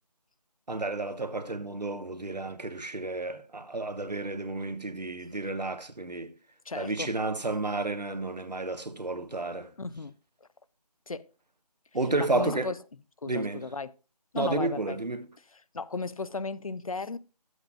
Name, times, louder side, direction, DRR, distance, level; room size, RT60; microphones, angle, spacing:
voice 1, 0.7-6.3 6.7-9.7 11.9-12.7 13.3-13.7 14.4-15.3, right 2 dB, 80° right, 1.3 m, -31 dB
voice 2, 6.7-7.1 9.8-10.1 11.1-11.3 12.2-12.8 13.2-13.9 14.3-15.0 15.5-17.2, left 3 dB, 55° left, 0.6 m, -35 dB
12.0 x 8.0 x 2.4 m
figure-of-eight pair, 165°, 21 cm